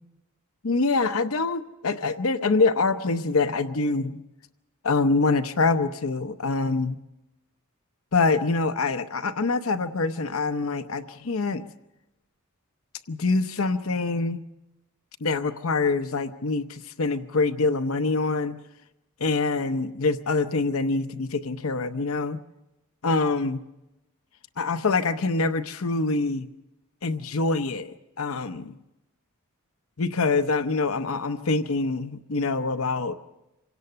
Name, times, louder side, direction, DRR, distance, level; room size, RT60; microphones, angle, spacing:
voice 1, 0.6-4.2 4.8-7.0 8.1-11.7 13.1-14.4 15.2-18.6 19.2-22.4 23.0-23.6 24.6-26.5 27.0-28.7 30.0-33.1, left 3 dB, 70° left, 10 dB, 0.8 m, -25 dB
27.0 x 17.5 x 6.8 m, 0.96 s
head